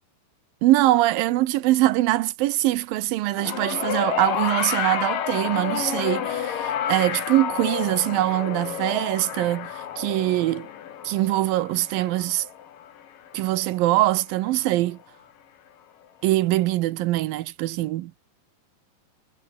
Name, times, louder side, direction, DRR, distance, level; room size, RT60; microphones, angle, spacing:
voice 1, 0.6-10.7 11.0-12.5 13.3-15.0 16.2-18.1, right 16 dB, 80° right, 2.1 m, -23 dB
sound 1, 3.4-13.8 14.8-14.9, left 9 dB, 55° left, 3.3 m, -30 dB
omnidirectional pair, 5.1 m